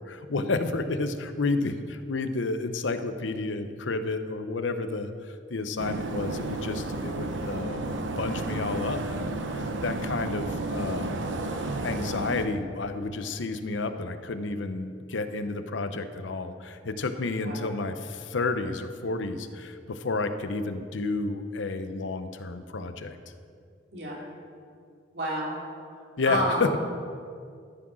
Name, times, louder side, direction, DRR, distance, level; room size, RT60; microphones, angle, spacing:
voice 1, 0.0-23.2 26.2-26.7, left 3 dB, 85° left, 9 dB, 0.7 m, -31 dB
sound 1, 5.8-12.5, right 2 dB, 85° right, 0.8 m, -32 dB
voice 2, 17.4-17.7 23.9-24.3 25.1-25.6 26.2-26.7, right 1 dB, 60° right, -3 dB, 2.6 m, -30 dB
13.5 x 6.1 x 6.2 m, 2.3 s
head